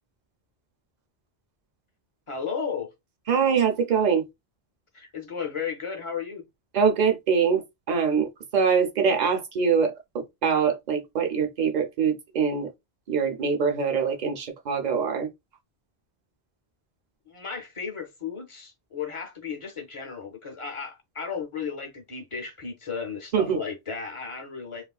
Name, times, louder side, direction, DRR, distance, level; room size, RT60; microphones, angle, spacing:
voice 1, 2.3-2.9 4.9-6.4 17.3-24.9, left 6 dB, 40° left, 0.5 m, -34 dB
voice 2, 3.3-4.3 6.7-12.7 13.1-15.3 23.3-23.6, right 6 dB, 50° right, 0.7 m, -24 dB
3.0 x 2.4 x 2.3 m
omnidirectional pair, 1.0 m